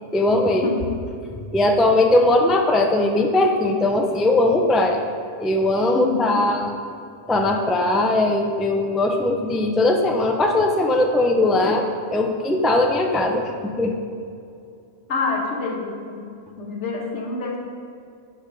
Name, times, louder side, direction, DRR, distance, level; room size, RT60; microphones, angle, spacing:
voice 1, 0.1-0.7 1.5-5.0 5.4-6.8 7.3-13.9, left 2 dB, ahead, 2 dB, 0.4 m, -19 dB
voice 2, 5.9-6.4 15.1-16.2 16.6-17.6, left 3 dB, 75° left, 0 dB, 1.5 m, -26 dB
10.0 x 4.2 x 6.3 m, 2.4 s
omnidirectional pair, 1.2 m